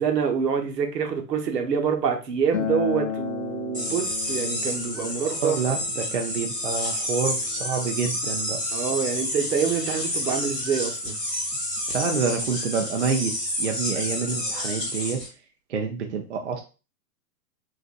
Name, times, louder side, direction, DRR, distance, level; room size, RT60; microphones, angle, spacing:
voice 1, 0.0-5.6 8.7-11.2, right 7 dB, 75° right, 4 dB, 1.0 m, -26 dB
Acoustic guitar, 2.5-7.7, left 8 dB, 55° left, 0.6 m, -34 dB
sound 1, 3.7-15.3, left 1 dB, 5° right, 1.1 m, -29 dB
voice 2, 5.2-8.6 11.9-13.3 13.6-15.2 15.7-16.6, right 5 dB, 45° right, 3 dB, 0.4 m, -28 dB
3.9 x 2.5 x 2.4 m, 0.32 s
hypercardioid pair, 170°, 49 cm